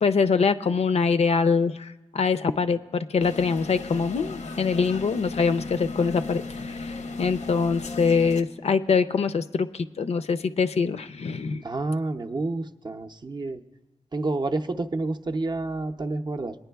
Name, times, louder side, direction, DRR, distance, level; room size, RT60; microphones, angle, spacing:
voice 1, 0.0-11.6, left 5 dB, 60° left, 12 dB, 0.4 m, -24 dB
sound 1, 3.2-8.4, left 3 dB, 90° left, 0.7 m, -36 dB
voice 2, 11.6-13.6 14.1-16.6, right 2 dB, 40° right, 6 dB, 0.5 m, -29 dB
22.0 x 9.7 x 2.3 m, 1.1 s
wide cardioid pair, 110°, 12 cm